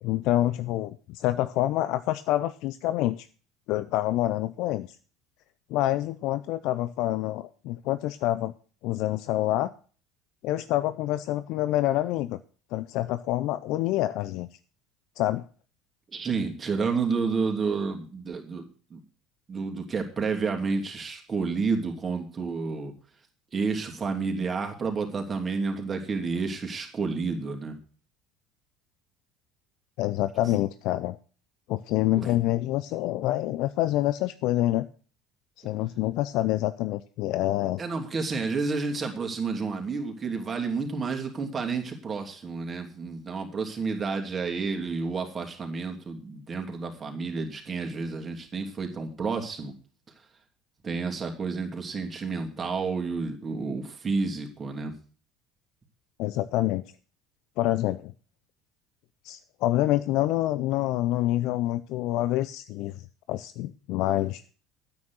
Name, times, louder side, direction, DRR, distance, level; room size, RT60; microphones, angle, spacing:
voice 1, 0.0-3.3 3.7-4.9 5.7-8.5 8.8-9.7 10.4-12.4 12.7-14.5 15.2-15.4 30.0-31.2 31.7-34.9 35.6-37.8 56.2-56.8 57.6-58.1 59.2-64.4, left 15 dB, 60° left, 14 dB, 0.5 m, -27 dB
voice 2, 16.1-19.0 19.5-22.9 23.5-27.8 30.5-30.6 32.2-32.3 37.8-49.7 50.8-54.9, right 4 dB, 30° right, 3 dB, 2.9 m, -30 dB
9.5 x 8.9 x 6.3 m, 0.39 s
hypercardioid pair, 70°, 0 cm